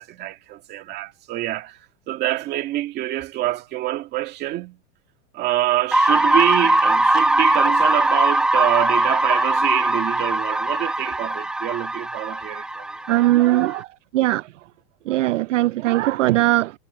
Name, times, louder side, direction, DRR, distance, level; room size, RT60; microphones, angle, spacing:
voice 1, 0.0-1.8 2.1-4.8 5.3-12.9, right 15 dB, 20° right, 2.0 m, -26 dB
sound 1, 5.9-13.8, right 1 dB, ahead, 1.1 m, -20 dB
voice 2, 13.1-13.9 14.1-14.4 15.1-16.8, right 16 dB, 60° right, 0.6 m, -19 dB
supercardioid pair, 175°, 44 cm